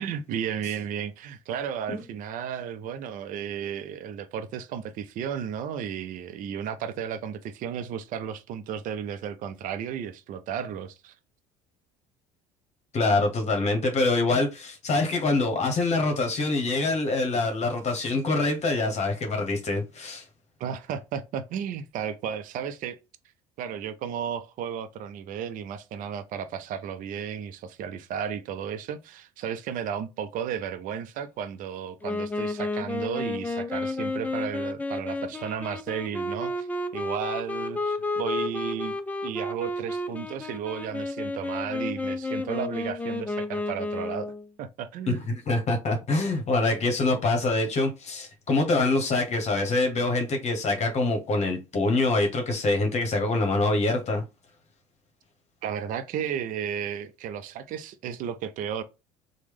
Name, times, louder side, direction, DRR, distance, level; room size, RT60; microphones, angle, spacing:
voice 1, 0.0-11.1 20.6-23.0 23.6-36.7 36.9-39.0 39.2-44.3 44.6-45.3 55.6-58.8, right 8 dB, 50° right, 0.5 m, -33 dB
voice 2, 12.9-20.2 45.1-54.2, left 2 dB, 40° left, 1.0 m, -25 dB
Wind instrument woodwind instrument, 32.0-44.5, left 2 dB, 10° left, 0.4 m, -31 dB
3.0 x 2.1 x 3.4 m
hypercardioid pair, 75°, 17 cm